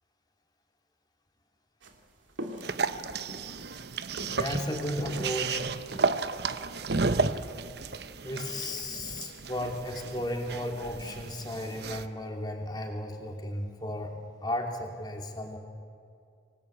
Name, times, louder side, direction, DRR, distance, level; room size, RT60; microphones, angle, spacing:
sound 1, 1.8-6.4 6.7-7.3, right 1 dB, 85° right, 2.7 m, -42 dB
sound 2, 2.6-12.1, right 4 dB, 60° right, 0.9 m, -33 dB
voice 1, 4.2-5.7 8.2-14.1 14.4-15.6, left 1 dB, 20° left, 2 dB, 3.0 m, -34 dB
26.5 x 19.5 x 8.4 m, 2.4 s
head